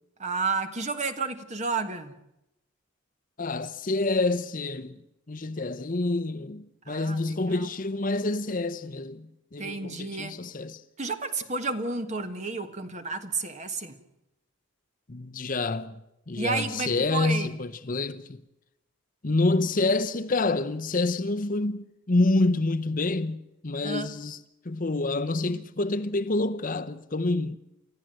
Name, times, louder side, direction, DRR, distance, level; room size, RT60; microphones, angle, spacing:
voice 1, 0.2-2.1 6.9-7.7 9.6-10.4 11.0-14.0 16.4-17.5 23.8-24.1, right 4 dB, 35° right, 1.5 m, -31 dB
voice 2, 3.4-5.0 5.3-10.8 15.1-16.0 16.3-18.4 19.2-24.4 24.6-27.6, left 2 dB, 40° left, 0.8 m, -27 dB
30.0 x 14.0 x 7.7 m
head